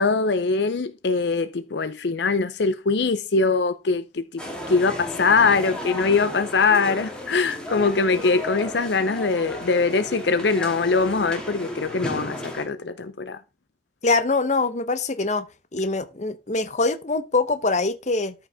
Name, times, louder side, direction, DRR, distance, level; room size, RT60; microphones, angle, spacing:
voice 1, 0.0-4.4 4.7-13.4, left 4 dB, 70° left, 0.6 m, -22 dB
sound 1, 4.4-12.6, left 1 dB, 5° left, 2.5 m, -34 dB
voice 2, 14.0-15.5 15.7-18.3, left 3 dB, 40° left, 0.9 m, -23 dB
13.0 x 5.5 x 3.6 m
head